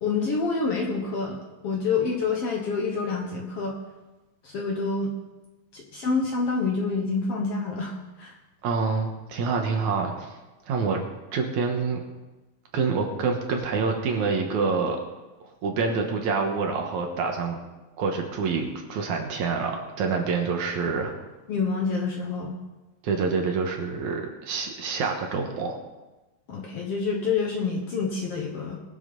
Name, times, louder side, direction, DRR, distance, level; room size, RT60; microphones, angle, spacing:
voice 1, 0.0-3.8 4.4-5.1 5.7-8.3 21.5-22.6 26.5-28.8, left 4 dB, 60° left, 0 dB, 1.8 m, -27 dB
voice 2, 8.6-10.3 10.7-11.0 11.3-12.0 12.7-15.0 15.4-17.6 18.0-21.1 23.0-25.8, right 4 dB, 65° right, 2 dB, 2.6 m, -27 dB
22.0 x 7.4 x 4.1 m, 1.1 s
omnidirectional pair, 3.8 m